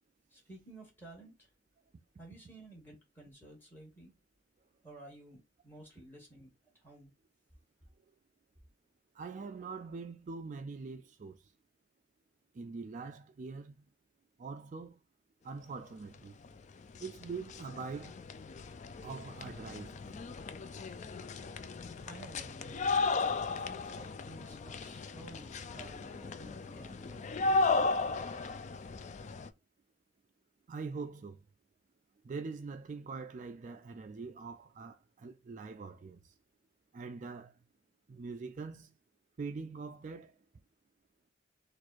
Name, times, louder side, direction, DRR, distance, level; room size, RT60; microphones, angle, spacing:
voice 1, 0.3-1.5 2.2-4.1 4.8-7.1 22.0-23.2 23.5-27.3, right 1 dB, 10° left, 2.1 m, -53 dB
voice 2, 9.1-11.5 12.5-13.9 14.4-15.0 15.4-16.3 17.0-18.2 19.0-20.2 30.7-31.4 32.2-36.3 36.9-37.6 38.1-38.9 39.4-40.3, right 4 dB, 40° right, 0.3 m, -43 dB
sound 1, 16.4-16.5 16.8-29.5, left 3 dB, 35° left, 0.3 m, -35 dB
4.3 x 2.5 x 4.4 m
head